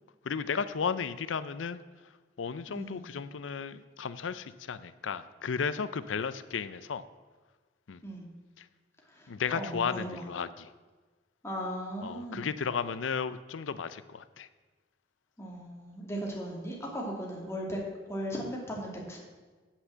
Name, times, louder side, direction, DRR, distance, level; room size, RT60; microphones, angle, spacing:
voice 1, 0.2-1.8 2.4-7.0 7.9-8.0 8.6-8.7 9.3-10.7 12.0-14.5, left 6 dB, 85° left, 14 dB, 0.5 m, -34 dB
voice 2, 2.7-3.0 8.0-8.3 9.5-10.2 11.4-12.5 15.4-17.8 18.1-19.2, equal, 15° left, -2 dB, 2.5 m, -37 dB
9.0 x 7.2 x 7.7 m, 1.4 s
head